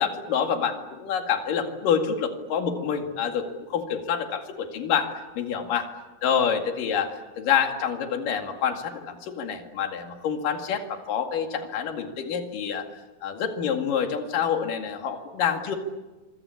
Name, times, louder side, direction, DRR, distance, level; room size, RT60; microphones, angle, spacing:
voice 1, 0.0-5.9 6.2-12.9 13.2-15.8, left 7 dB, 75° left, 4 dB, 3.8 m, -27 dB
26.0 x 24.5 x 8.4 m, 1.2 s
omnidirectional pair, 3.9 m